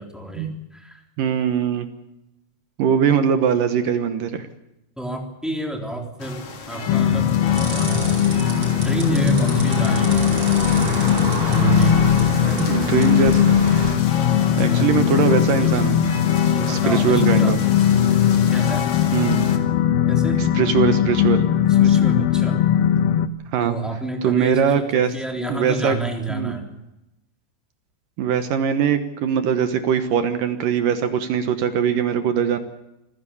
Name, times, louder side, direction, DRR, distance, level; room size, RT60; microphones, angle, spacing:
voice 1, 0.0-1.0 5.0-6.4 6.7-7.3 7.7-8.3 8.7-10.3 11.5-12.1 12.4-13.0 14.7-14.9 15.6-15.8 16.5-17.5 18.5-18.9 20.1-20.5 21.7-22.6 23.6-26.6, right 2 dB, ahead, 2 dB, 2.5 m, -28 dB
voice 2, 1.2-1.9 2.8-4.5 12.6-13.6 14.6-16.0 16.7-17.6 19.1-19.5 20.6-21.5 21.8-22.0 23.5-23.8 24.2-25.1 25.5-26.0 26.3-26.5 28.2-32.6, right 7 dB, 65° right, 9 dB, 2.3 m, -21 dB
sound 1, 6.2-19.6, left 5 dB, 45° left, 2.3 m, -34 dB
sound 2, 6.9-23.3, left 10 dB, 70° left, 2.4 m, -19 dB
sound 3, 7.5-13.9, right 1 dB, 30° right, 5.6 m, -29 dB
27.5 x 15.5 x 7.1 m, 0.90 s
omnidirectional pair, 5.1 m